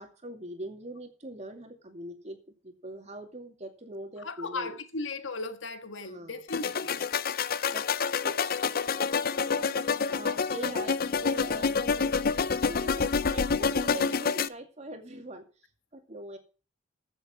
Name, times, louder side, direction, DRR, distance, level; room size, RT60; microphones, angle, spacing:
voice 1, 0.0-2.4 2.6-4.7 6.1-6.4 7.7-7.9 8.2-8.5 9.3-12.2 12.6-15.4 15.9-16.4, right 1 dB, 35° right, 2.3 m, -42 dB
voice 2, 4.2-7.0, left 3 dB, 80° left, 1.6 m, -36 dB
sound 1, 6.5-14.5, left 5 dB, 50° left, 0.6 m, -28 dB
15.0 x 7.2 x 5.9 m
head